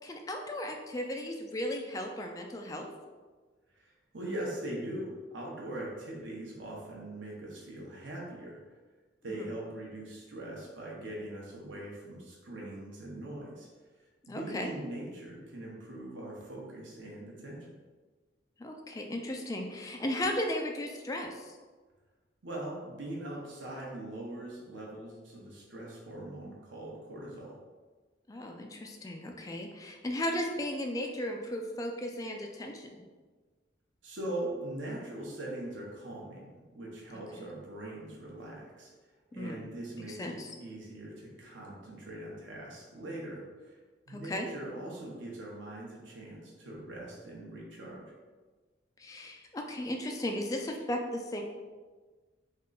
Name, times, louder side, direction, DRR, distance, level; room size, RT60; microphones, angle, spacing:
voice 1, 0.0-2.9 9.3-9.5 14.3-14.7 18.6-21.6 28.3-33.0 37.4-37.5 39.4-39.7 40.1-40.5 44.1-44.5 49.0-51.4, left 1 dB, 20° left, 2 dB, 0.3 m, -36 dB
voice 2, 3.8-8.6 9.2-13.7 14.3-17.6 22.4-27.5 34.0-38.9 39.3-43.8 44.1-48.0, right 1 dB, 85° right, -3 dB, 0.9 m, -41 dB
3.6 x 2.2 x 3.8 m, 1.4 s
head